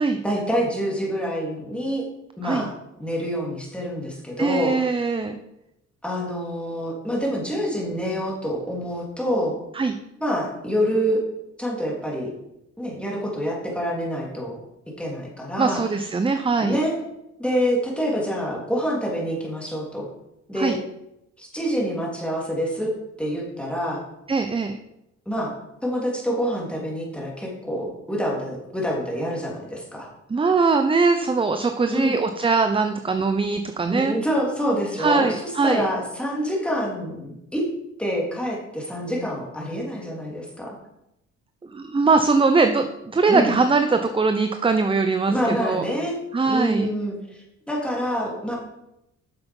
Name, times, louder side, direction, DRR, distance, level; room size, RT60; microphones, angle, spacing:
voice 1, 0.2-2.1 2.4-2.7 3.0-4.7 6.0-9.5 10.2-11.2 11.6-12.3 12.8-14.6 15.0-15.8 16.6-17.0 17.4-20.1 20.5-20.8 21.4-22.9 23.2-24.0 25.2-25.5 25.8-30.1 31.9-32.1 33.9-37.6 38.0-40.7 43.3-43.6 45.3-48.5, equal, 5° left, -3 dB, 3.3 m, -26 dB
voice 2, 4.4-5.4 9.7-9.9 15.6-16.8 20.6-20.8 24.3-24.8 30.3-34.1 35.0-35.8 41.6-45.9 46.3-46.9, right 4 dB, 15° right, 8 dB, 0.6 m, -21 dB
8.0 x 6.9 x 5.4 m, 0.87 s
cardioid pair, 90°, 30 cm